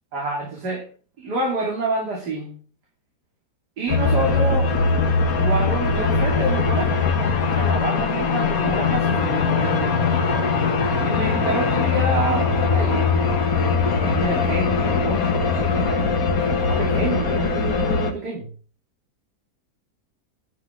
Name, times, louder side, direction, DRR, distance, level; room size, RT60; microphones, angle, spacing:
voice 1, 0.1-0.9 1.2-2.5 3.8-4.8 5.3-7.0 7.5-10.1 11.0-13.2 13.9-18.5, right 2 dB, 85° right, -2 dB, 3.4 m, -28 dB
sound 1, 3.9-18.1, left 4 dB, 60° left, 1.8 m, -21 dB
11.5 x 6.2 x 6.1 m, 0.41 s
omnidirectional pair, 1.7 m